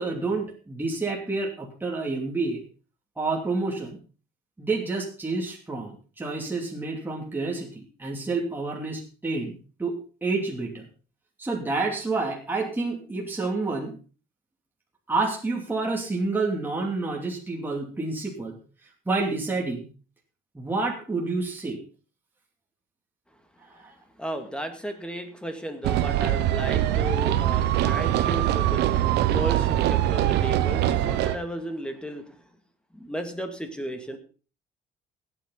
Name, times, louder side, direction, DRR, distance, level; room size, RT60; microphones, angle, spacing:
voice 1, 0.0-2.6 3.2-4.0 4.6-9.5 9.8-10.9 11.4-14.0 15.1-18.6 19.1-19.9 20.5-21.8 23.6-23.9, right 3 dB, 10° right, -2 dB, 2.7 m, -29 dB
voice 2, 24.2-28.8 29.3-32.2 32.9-34.2, equal, 5° left, 6 dB, 2.2 m, -34 dB
sound 1, 25.8-31.3, right 13 dB, 80° right, 1.0 m, -23 dB
17.0 x 9.1 x 4.0 m, 0.37 s
cardioid pair, 110°, 17 cm